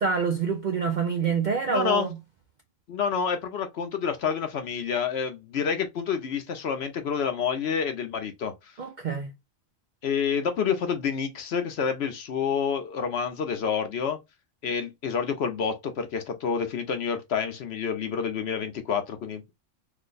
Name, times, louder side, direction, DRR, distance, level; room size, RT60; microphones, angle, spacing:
voice 1, 0.0-2.2 8.8-9.3, right 5 dB, 60° right, 0.4 m, -26 dB
voice 2, 1.7-2.1 2.9-8.7 10.0-14.2 14.6-19.5, left 6 dB, 60° left, 0.8 m, -28 dB
3.3 x 2.1 x 3.7 m
omnidirectional pair, 1.3 m